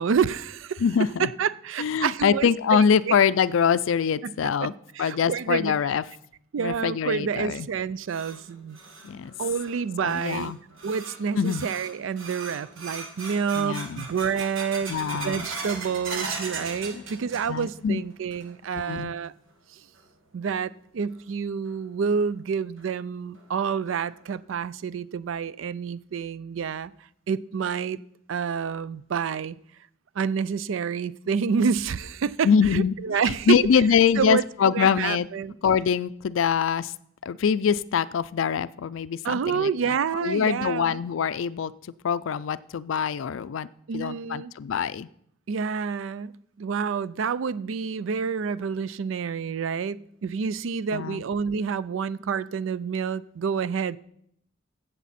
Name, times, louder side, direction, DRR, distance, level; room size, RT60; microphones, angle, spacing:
voice 1, 0.0-0.8 1.2-3.2 4.2-4.3 4.6-5.8 6.5-8.8 9.4-10.5 10.8-19.3 19.7-19.8 20.3-26.9 27.3-28.0 28.3-29.6 30.2-33.6 34.2-35.5 39.2-41.0 43.9-44.5 45.5-54.0, right 6 dB, 70° right, 18 dB, 0.4 m, -28 dB
voice 2, 0.8-1.3 1.8-4.7 5.0-6.0 6.6-7.7 9.0-9.3 10.0-10.6 11.4-11.6 13.5-14.1 14.9-15.5 16.9-17.0 17.5-18.0 18.7-19.1 32.4-32.9 33.2-35.3 35.6-36.9 37.2-41.7 42.0-43.7 43.9-45.1 50.9-51.2, left 7 dB, 75° left, 17 dB, 0.4 m, -24 dB
sound 1, 7.7-17.8 18.1-18.7 19.1-19.2 19.9-20.0 21.7-21.8 22.2-22.3 22.8-22.9 23.4-23.5 24.0-24.4, right 4 dB, 90° right, 1.8 m, -39 dB
15.5 x 6.9 x 4.2 m, 0.71 s
head